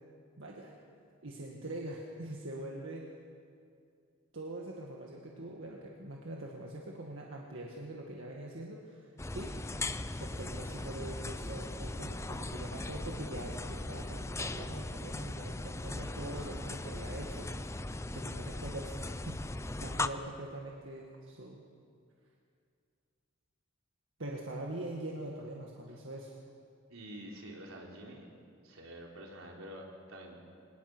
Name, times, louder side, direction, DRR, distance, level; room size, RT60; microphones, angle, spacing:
voice 1, 0.4-0.7 1.2-3.0 4.3-9.6 10.2-17.5 18.1-21.6 24.2-26.4, right 1 dB, 65° right, -1 dB, 2.0 m, -43 dB
sound 1, 9.2-20.1, left 2 dB, 15° left, 0.5 m, -39 dB
voice 2, 16.2-16.6 26.9-28.3 28.6-30.4, right 1 dB, 80° right, -1 dB, 3.9 m, -48 dB
25.0 x 19.5 x 6.3 m, 2.3 s
head